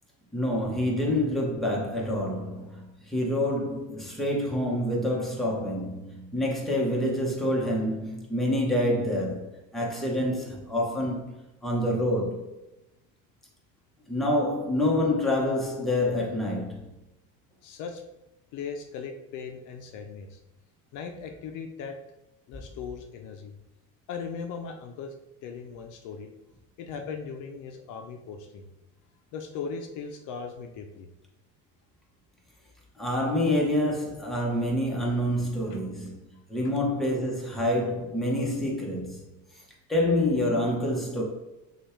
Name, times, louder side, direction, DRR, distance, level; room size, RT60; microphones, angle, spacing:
voice 1, 0.3-11.3 11.6-12.4 14.1-16.9 33.0-36.2 36.5-39.2 39.9-41.2, left 1 dB, ahead, 0.9 m, -27 dB
voice 2, 17.6-18.0 18.5-20.4 20.9-22.0 22.5-23.5 24.1-25.1 25.4-26.3 26.8-28.7 29.3-31.1 35.7-35.8, left 5 dB, 60° left, 0.6 m, -38 dB
6.2 x 2.4 x 3.1 m
cardioid pair, 135°, 35 cm